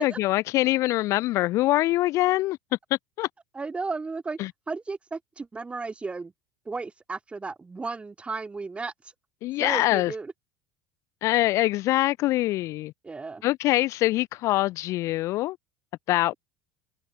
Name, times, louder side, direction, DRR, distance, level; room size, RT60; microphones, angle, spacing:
voice 1, 0.0-2.6 3.2-3.3 9.4-10.1 11.2-12.9 13.4-15.6 16.1-16.3, left 17 dB, 45° left, 0.4 m, -24 dB
voice 2, 3.5-4.4 4.7-6.3 6.7-8.9 9.6-10.3 13.0-13.4, right 4 dB, 15° right, 2.3 m, -34 dB
figure-of-eight pair, 70°, 7 cm